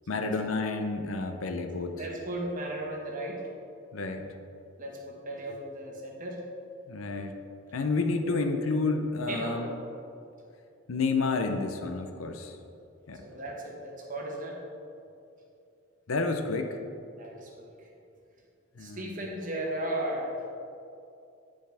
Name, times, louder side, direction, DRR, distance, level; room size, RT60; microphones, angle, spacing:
voice 1, 0.1-2.1 3.9-4.3 6.9-7.3 7.7-9.7 10.9-12.6 13.1-13.2 16.1-16.8 18.8-19.1, left 3 dB, 80° left, 6 dB, 0.6 m, -30 dB
voice 2, 1.9-3.4 4.8-6.4 8.2-8.6 9.3-9.6 13.2-14.6 17.2-17.7 18.8-20.5, right 1 dB, 40° right, -1 dB, 1.1 m, -36 dB
9.6 x 5.2 x 3.4 m, 2.6 s
head